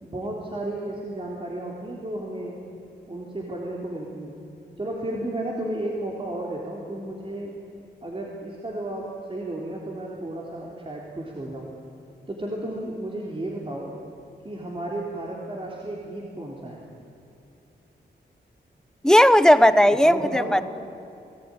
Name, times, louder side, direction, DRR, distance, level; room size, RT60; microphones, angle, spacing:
voice 1, 0.0-2.6 3.1-4.4 4.8-7.5 8.0-11.7 12.3-13.9 14.4-16.9 19.9-20.6, right 1 dB, 30° right, -2 dB, 3.7 m, -33 dB
voice 2, 19.0-20.6, equal, 5° left, 13 dB, 0.9 m, -16 dB
30.0 x 19.0 x 9.9 m, 2.7 s
wide cardioid pair, 120°, 18 cm